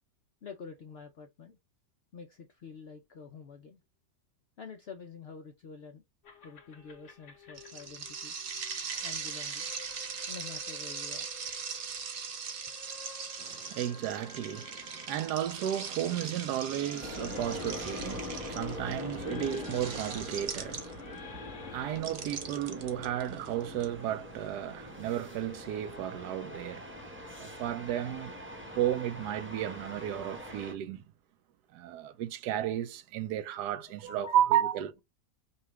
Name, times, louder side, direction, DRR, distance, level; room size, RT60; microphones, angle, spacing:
voice 1, 0.4-1.6 2.1-3.8 4.6-6.0 6.4-8.4 9.0-9.7 10.3-11.3 33.7-34.4 34.6-34.8, left 5 dB, 70° left, 0.5 m, -47 dB
sound 1, 6.2-22.0, left 5 dB, 50° left, 1.4 m, -52 dB
sound 2, 7.6-21.2 22.0-23.8, right 6 dB, 50° right, 1.0 m, -40 dB
voice 2, 13.4-27.0 27.4-28.3 28.8-31.0 31.7-35.0, right 11 dB, 85° right, 1.2 m, -33 dB
sound 3, 17.0-30.7, left 2 dB, 10° right, 0.8 m, -43 dB
5.6 x 2.4 x 3.0 m
omnidirectional pair, 1.7 m